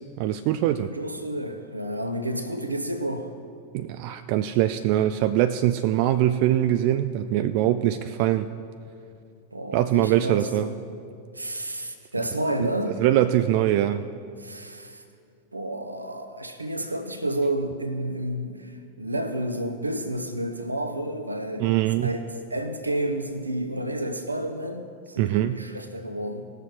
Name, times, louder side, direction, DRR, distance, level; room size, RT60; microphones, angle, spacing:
voice 1, 0.2-0.9 3.7-8.5 9.7-10.7 12.6-12.7 13.0-14.1 21.6-22.1 25.2-25.6, right 13 dB, 45° right, 11 dB, 0.3 m, -23 dB
voice 2, 0.8-3.3 9.5-10.7 11.3-12.9 14.4-15.0 15.5-21.8 22.0-22.2 22.5-26.4, right 1 dB, 85° right, 7 dB, 0.8 m, -30 dB
18.5 x 6.7 x 4.6 m, 2.4 s
figure-of-eight pair, 90°, 0 cm